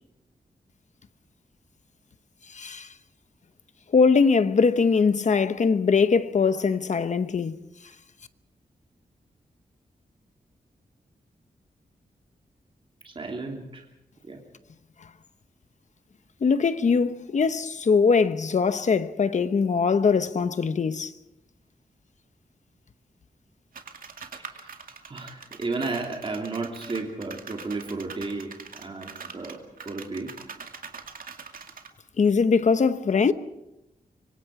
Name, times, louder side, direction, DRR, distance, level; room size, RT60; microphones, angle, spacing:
voice 1, 2.5-2.9 3.9-7.6 16.4-21.1 32.2-33.3, left 5 dB, 55° left, 1.0 m, -21 dB
voice 2, 13.0-13.8 14.3-14.4 24.4-24.7 25.1-29.6 29.8-30.4, right 3 dB, 35° right, 3.0 m, -33 dB
sound 1, 23.7-31.9, right 5 dB, 70° right, 2.3 m, -43 dB
25.0 x 24.5 x 4.9 m
wide cardioid pair, 145°, 15 cm